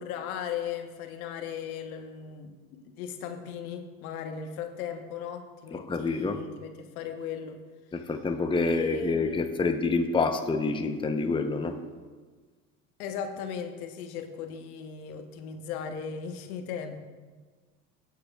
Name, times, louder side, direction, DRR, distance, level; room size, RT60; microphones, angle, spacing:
voice 1, 0.0-7.6 8.0-8.1 8.6-9.5 13.0-17.0, left 7 dB, 70° left, 6 dB, 1.2 m, -37 dB
voice 2, 5.7-6.4 7.9-11.8, left 3 dB, 10° left, 6 dB, 0.8 m, -27 dB
16.5 x 8.0 x 2.4 m, 1.4 s
hypercardioid pair, 80°, 44 cm